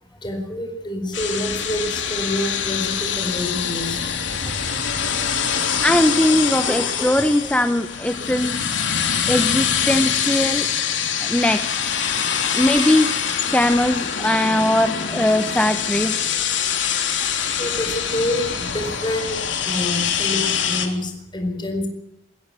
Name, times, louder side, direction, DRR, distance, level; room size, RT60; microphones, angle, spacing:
voice 1, 0.2-4.1 5.0-5.3 17.6-21.9, left 1 dB, 25° left, 4 dB, 4.5 m, -27 dB
sound 1, 1.1-20.9, left 7 dB, 75° left, 3.4 m, -24 dB
voice 2, 5.8-8.6 9.3-10.7 11.2-11.9 12.5-13.1 13.5-16.1, left 1 dB, 5° left, 8 dB, 0.9 m, -20 dB
22.5 x 16.0 x 8.4 m, 0.81 s
head